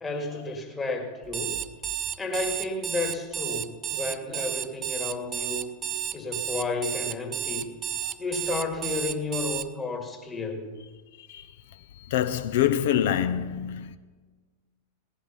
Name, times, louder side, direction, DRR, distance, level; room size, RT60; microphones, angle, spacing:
voice 1, 0.0-1.6 2.2-5.7 6.1-7.7 8.2-10.8, left 3 dB, 15° left, 2.1 m, -32 dB
Alarm, 1.2-9.7, right 11 dB, 30° right, 0.6 m, -32 dB
voice 2, 12.1-14.0, left 10 dB, 55° left, 0.8 m, -25 dB
17.5 x 10.5 x 5.6 m
figure-of-eight pair, 90°, 0 cm